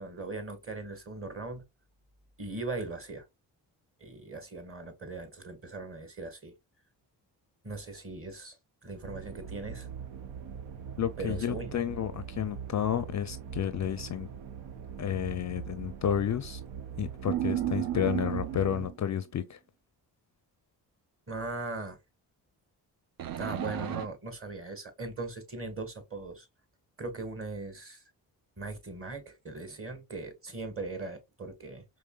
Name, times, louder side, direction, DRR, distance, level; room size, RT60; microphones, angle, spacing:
voice 1, 0.0-1.6 2.4-3.2 4.0-6.5 7.6-8.6 8.8-9.9 11.2-11.7 21.3-22.0 23.4-26.5 27.0-28.0 28.6-31.8, right 3 dB, 30° right, 1.5 m, -39 dB
sound 1, 9.0-18.9, right 7 dB, 80° right, 0.8 m, -42 dB
voice 2, 11.0-14.3 15.0-16.6 17.0-19.6, left 9 dB, 40° left, 0.4 m, -31 dB
sound 2, 17.3-19.1 23.2-24.1, right 12 dB, 50° right, 0.5 m, -33 dB
4.7 x 3.0 x 2.3 m
cardioid pair, 60°, 44 cm